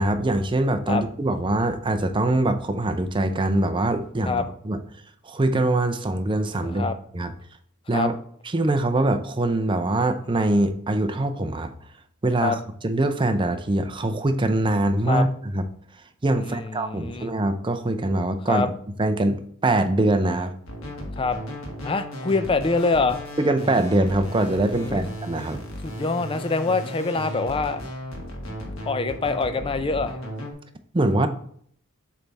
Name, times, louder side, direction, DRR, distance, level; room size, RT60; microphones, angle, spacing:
voice 1, 0.0-4.8 5.2-7.3 7.9-8.1 8.5-11.7 12.2-12.6 12.8-15.6 16.2-18.7 19.0-20.5 23.4-25.6 30.9-31.3, right 2 dB, 25° right, 8 dB, 0.5 m, -23 dB
voice 2, 6.6-7.0 7.9-8.1 12.4-12.6 15.1-15.3 16.3-17.3 18.5-18.7 21.2-21.4 21.8-23.2 24.8-25.1 25.8-27.8 28.9-30.2, left 3 dB, 25° left, 10 dB, 0.4 m, -25 dB
sound 1, 20.7-30.5, equal, 75° left, 1.5 m, -35 dB
7.3 x 3.4 x 4.1 m, 0.62 s
head